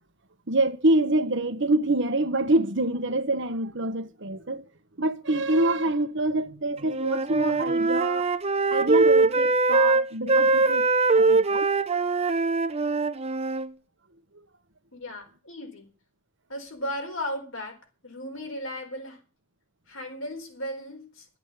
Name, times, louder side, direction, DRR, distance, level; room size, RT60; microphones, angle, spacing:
voice 1, 0.5-4.6 5.0-8.3 8.7-10.8 11.2-11.7, right 2 dB, 60° right, 1.3 m, -25 dB
Wind instrument woodwind instrument, 6.9-13.7, right 3 dB, 30° right, 0.7 m, -22 dB
voice 2, 10.2-10.7 14.9-15.9 16.5-17.8 18.0-19.2 19.9-21.3, left 1 dB, 75° left, 4.1 m, -36 dB
12.5 x 8.3 x 8.2 m
head